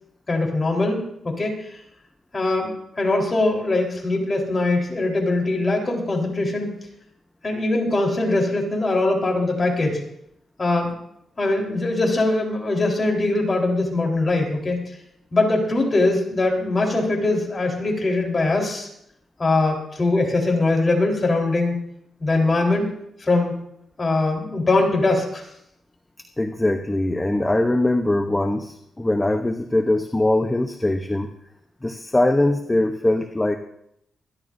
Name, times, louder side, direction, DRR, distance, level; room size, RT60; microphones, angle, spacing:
voice 1, 0.3-1.8 2.3-6.8 7.4-10.0 10.6-10.9 11.4-14.9 15.3-18.9 19.4-21.8 22.2-22.9 23.2-23.5 24.0-25.5, left 2 dB, 30° left, 0 dB, 4.0 m, -22 dB
voice 2, 26.4-31.3 31.8-33.6, left 1 dB, 15° left, 5 dB, 0.9 m, -21 dB
24.5 x 12.0 x 2.7 m, 0.75 s
cardioid pair, 110°, 0 cm